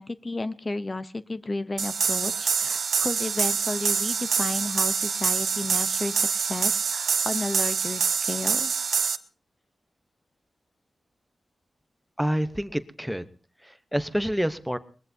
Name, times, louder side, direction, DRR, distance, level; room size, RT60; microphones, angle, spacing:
voice 1, 0.0-8.7, left 2 dB, 30° left, 12 dB, 0.7 m, -32 dB
sound 1, 1.8-9.2, right 6 dB, 85° right, 0.9 m, -26 dB
voice 2, 12.2-13.3 13.6-14.8, equal, 5° right, 11 dB, 0.9 m, -27 dB
22.5 x 21.0 x 2.7 m, 0.39 s
wide cardioid pair, 110°, 0 cm